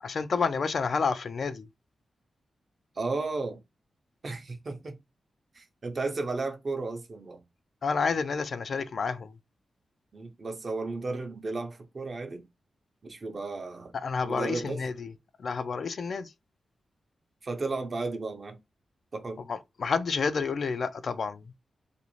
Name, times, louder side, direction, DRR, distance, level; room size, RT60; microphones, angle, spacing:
voice 1, 0.0-1.7 7.8-9.4 13.9-15.1 15.4-16.3 19.5-21.5, left 5 dB, 65° left, 0.3 m, -29 dB
voice 2, 3.0-3.6 4.2-5.0 5.6-7.4 10.1-12.5 13.1-13.9 14.2-14.8 17.4-18.6 19.1-19.4, right 3 dB, 50° right, 0.6 m, -34 dB
2.5 x 2.0 x 3.0 m
cardioid pair, 65°, 0 cm